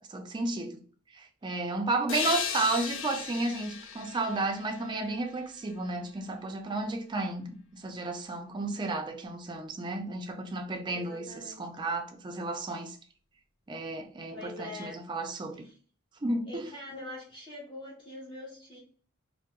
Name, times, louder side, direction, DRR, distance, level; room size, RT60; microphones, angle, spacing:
voice 1, 0.1-0.8 1.1-13.0 13.7-15.7 16.2-16.6, right 2 dB, 20° right, 0.3 m, -33 dB
sound 1, 2.1-5.6, left 6 dB, 65° left, 0.4 m, -36 dB
voice 2, 10.9-11.7 14.1-15.0 15.5-15.8 16.4-18.8, left 1 dB, 25° left, 0.6 m, -44 dB
2.2 x 2.2 x 2.8 m
head